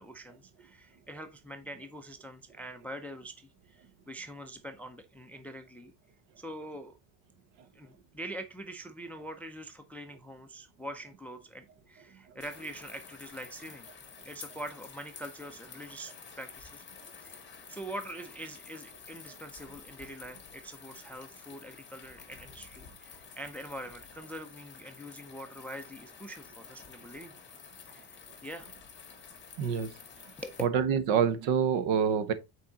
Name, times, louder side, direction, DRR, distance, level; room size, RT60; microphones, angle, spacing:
voice 1, 0.0-5.9 6.4-7.0 7.7-13.9 14.2-16.8 17.2-17.4 17.7-27.3 27.8-28.7 30.4-30.6, right 1 dB, 5° left, 0.4 m, -44 dB
sound 1, 12.4-30.7, left 6 dB, 20° left, 2.0 m, -50 dB
voice 2, 29.6-29.9 30.6-32.3, right 7 dB, 65° right, 1.2 m, -26 dB
8.7 x 4.6 x 3.8 m
cardioid pair, 170°, 47 cm